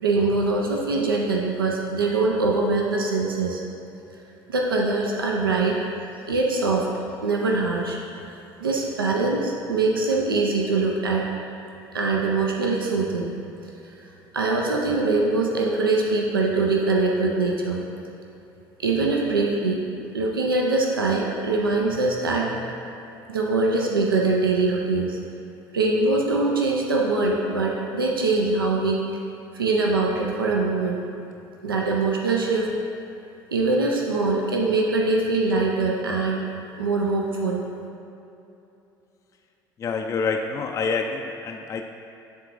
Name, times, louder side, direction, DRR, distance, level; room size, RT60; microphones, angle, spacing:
voice 1, 0.0-3.6 4.5-5.8 6.3-6.9 7.2-8.0 8.6-11.2 11.9-13.3 14.3-17.8 18.8-19.8 20.1-22.6 23.3-25.2 25.7-29.0 29.5-31.0 31.6-32.7 33.5-36.5 36.8-37.6, right 3 dB, 80° right, -1 dB, 0.5 m, -23 dB
voice 2, 39.8-41.8, left 4 dB, 25° left, 3 dB, 0.3 m, -27 dB
10.0 x 3.7 x 2.6 m, 2.8 s
figure-of-eight pair, 60°, 12 cm